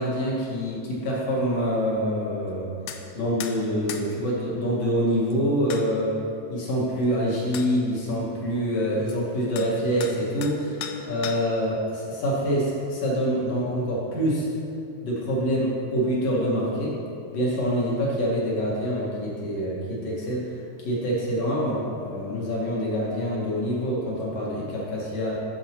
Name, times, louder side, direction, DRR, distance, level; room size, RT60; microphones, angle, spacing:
voice 1, 0.0-2.7 3.1-6.2 6.5-14.5 15.0-17.0 17.3-25.4, equal, 60° left, -5 dB, 2.5 m, -26 dB
sound 1, 2.9-3.0 3.4-3.6 3.9-4.1 5.3-5.4 5.7-5.9 7.0-7.1 7.5-7.7 9.1-9.2 9.6-9.7 10.0-10.6 10.8-11.6, left 9 dB, 85° left, 2.0 m, -36 dB
10.5 x 7.4 x 2.9 m, 2.6 s
omnidirectional pair, 3.4 m